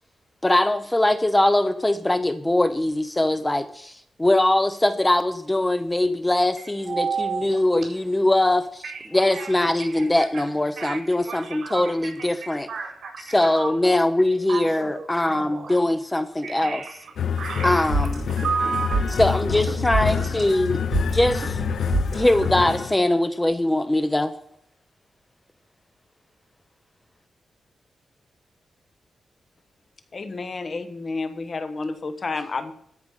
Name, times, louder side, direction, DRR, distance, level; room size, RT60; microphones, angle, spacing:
voice 1, 0.4-8.8 9.1-12.7 13.3-16.8 17.6-18.2 19.2-21.6 22.1-24.3, left 1 dB, 10° left, 10 dB, 0.6 m, -22 dB
voice 2, 6.6-7.6 8.8-9.1 9.3-9.5 9.8-10.4 10.8-13.7 14.5-15.8 16.4-18.1 18.4-19.1, right 5 dB, 75° right, 0 dB, 4.4 m, -32 dB
sound 1, 17.2-22.9, left 7 dB, 75° left, 0.6 m, -27 dB
sound 2, 17.7-22.8, right 3 dB, 45° right, 4.6 m, -29 dB
voice 3, 30.1-32.7, left 3 dB, 40° left, 9 dB, 1.0 m, -30 dB
13.0 x 5.2 x 6.8 m, 0.69 s
wide cardioid pair, 140°, 0 cm